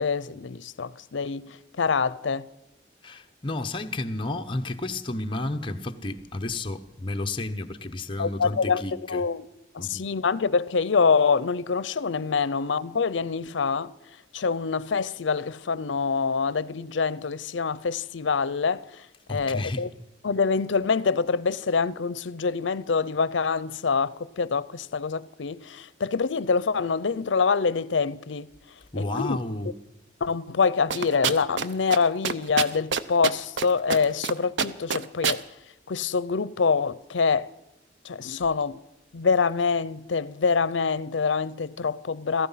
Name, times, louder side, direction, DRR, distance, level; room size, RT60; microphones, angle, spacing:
voice 1, 0.0-2.5 8.2-9.4 9.7-13.9 14.3-19.0 19.3-19.9 20.2-28.5 29.0-29.4 30.2-35.4 35.9-37.5 38.0-38.8 39.1-42.5, left 5 dB, 80° left, 0.6 m, -25 dB
voice 2, 3.0-9.2 9.8-10.1 19.3-19.9 28.9-29.7, left 2 dB, 25° left, 0.9 m, -32 dB
sound 1, 30.9-31.7 31.9-32.0 32.2-33.6 33.9-34.3 34.6-35.4, right 6 dB, 75° right, 0.7 m, -25 dB
16.5 x 14.5 x 5.7 m
head